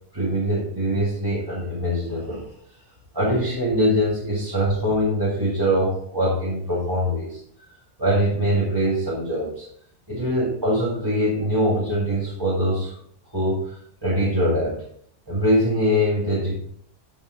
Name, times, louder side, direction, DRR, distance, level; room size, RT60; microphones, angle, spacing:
voice 1, 0.1-2.5 3.1-7.4 8.0-9.7 10.1-13.0 13.3-14.8 15.3-16.5, equal, 20° right, -7 dB, 2.0 m, -23 dB
13.0 x 4.4 x 3.8 m, 0.66 s
omnidirectional pair, 1.2 m